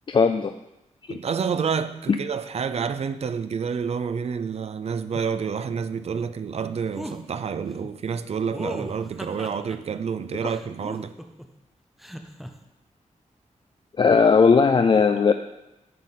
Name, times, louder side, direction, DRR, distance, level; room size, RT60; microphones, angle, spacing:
voice 1, 0.1-0.5 14.0-15.3, left 5 dB, 40° left, 0.3 m, -17 dB
voice 2, 1.1-11.1, right 6 dB, 55° right, 0.4 m, -29 dB
sound 1, 6.9-7.2 8.5-9.8 10.5-11.5 12.0-12.5, equal, ahead, 0.6 m, -36 dB
9.2 x 3.8 x 6.5 m
wide cardioid pair, 125°, 13 cm